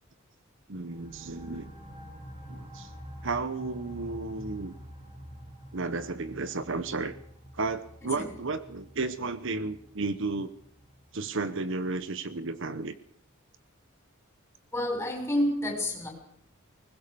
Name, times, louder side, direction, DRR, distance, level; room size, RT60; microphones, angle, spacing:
voice 1, 0.7-1.7 2.5-2.9 3.2-4.7 5.7-7.2 7.5-10.5 11.1-12.9, right 3 dB, 60° right, 13 dB, 1.1 m, -33 dB
sound 1, 0.8-12.1, equal, 25° right, 4.1 m, -47 dB
voice 2, 14.7-16.1, left 1 dB, 10° left, 2 dB, 6.6 m, -29 dB
21.5 x 20.0 x 6.9 m, 0.63 s
head